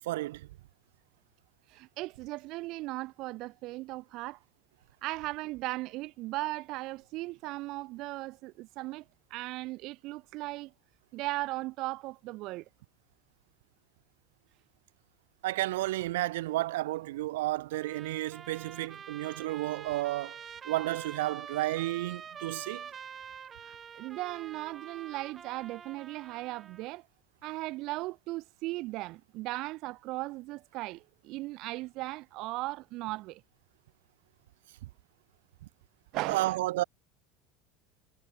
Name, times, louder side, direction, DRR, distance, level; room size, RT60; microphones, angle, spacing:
voice 1, 0.0-0.5 15.4-20.4 20.6-22.9 36.2-36.8, right 17 dB, 80° right, 3.0 m, -32 dB
voice 2, 1.7-4.4 5.0-9.0 9.3-10.7 11.1-12.6 23.6-27.0 27.4-33.4 36.1-36.6, right 20 dB, 60° right, 1.7 m, -37 dB
Trumpet, 17.7-26.9, right 7 dB, 35° right, 4.7 m, -46 dB
hypercardioid pair, 90°, 0 cm